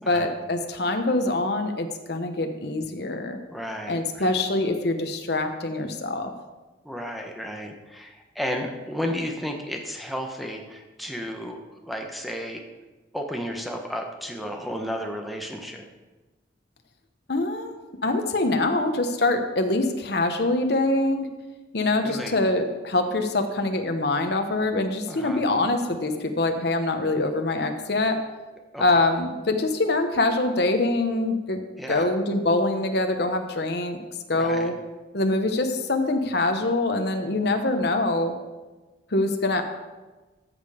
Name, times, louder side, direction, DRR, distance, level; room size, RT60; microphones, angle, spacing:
voice 1, 0.1-3.4 3.9-6.3 17.3-21.3 21.7-28.2 28.8-31.6 31.9-34.0 34.3-34.7 35.1-38.3 39.1-39.6, left 2 dB, 60° left, 5 dB, 1.0 m, -24 dB
voice 2, 3.5-4.3 6.8-12.6 13.1-15.9 22.0-22.4 25.1-25.4 28.7-29.0 31.8-32.1 34.3-34.7, equal, ahead, 2 dB, 1.1 m, -33 dB
14.0 x 6.7 x 5.0 m, 1.2 s
head